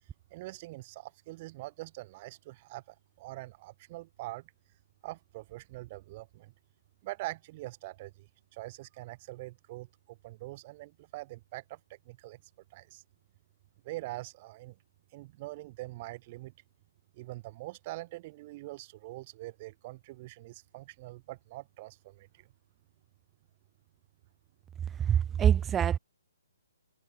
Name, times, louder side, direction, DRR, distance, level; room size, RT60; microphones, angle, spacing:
voice 1, 0.3-4.5 5.0-6.5 7.0-12.4 12.7-13.0 13.8-14.8 15.1-16.5 17.1-22.5, right 19 dB, 35° right, 6.4 m, -44 dB
voice 2, 25.0-26.0, right 9 dB, 15° right, 1.9 m, -25 dB
hypercardioid pair, 140°, 0 cm